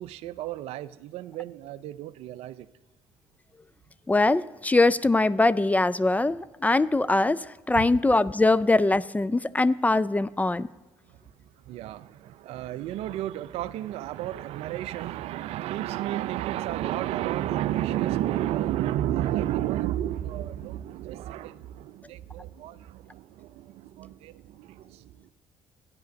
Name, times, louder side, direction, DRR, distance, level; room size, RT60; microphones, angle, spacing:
voice 1, 0.0-2.7 7.7-8.0 11.1-25.3, right 13 dB, 65° right, 17 dB, 0.4 m, -32 dB
voice 2, 4.1-10.7, left 2 dB, 15° left, 17 dB, 0.3 m, -22 dB
12.5 x 10.5 x 5.2 m, 1.2 s
hypercardioid pair, 60°, 11 cm